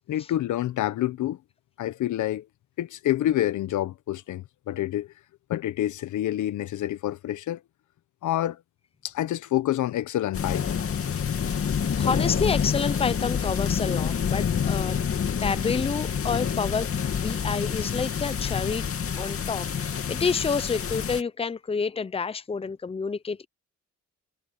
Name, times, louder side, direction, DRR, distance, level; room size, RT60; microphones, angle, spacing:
voice 1, 0.1-1.4 1.8-2.4 2.8-5.1 5.5-7.6 8.2-8.6 9.0-10.8, left 13 dB, 75° left, 1.2 m, -27 dB
sound 1, 10.3-21.2, left 7 dB, 50° left, 2.6 m, -27 dB
voice 2, 11.2-15.0 15.4-18.9 19.2-23.5, left 5 dB, 20° left, 0.8 m, -29 dB
cardioid pair, 90°, 30 cm